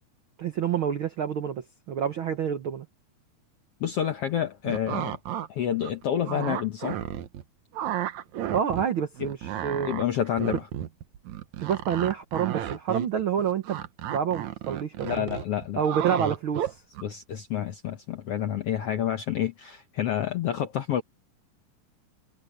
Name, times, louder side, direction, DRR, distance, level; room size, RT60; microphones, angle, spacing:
voice 1, 0.4-2.9 8.5-9.9 11.6-13.8 14.1-15.3 15.8-16.8, right 8 dB, 80° right, 1.1 m, -28 dB
voice 2, 3.8-5.2 5.5-7.0 9.8-10.7 15.0-15.8 17.0-21.0, left 10 dB, 70° left, 1.4 m, -29 dB
sound 1, 4.6-5.5 5.8-7.4 7.7-8.9 9.2-17.0, right 11 dB, 65° right, 2.2 m, -33 dB
omnidirectional pair, 4.0 m